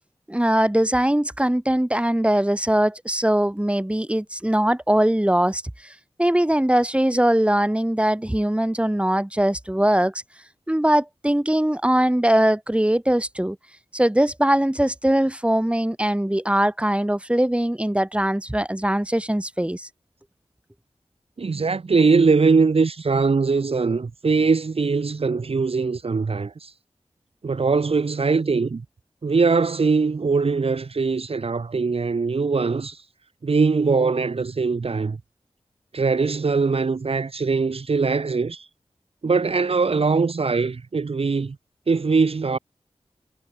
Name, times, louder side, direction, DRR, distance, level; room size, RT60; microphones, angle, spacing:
voice 1, 0.3-10.1 10.7-13.6 13.9-19.9, right 1 dB, 10° right, 4.7 m, -21 dB
voice 2, 21.4-26.7 27.4-28.8 29.2-33.0 33.4-35.2 35.9-38.7 39.2-41.6 41.9-42.6, right 4 dB, 60° right, 1.2 m, -21 dB
wide cardioid pair, 85°, 11 cm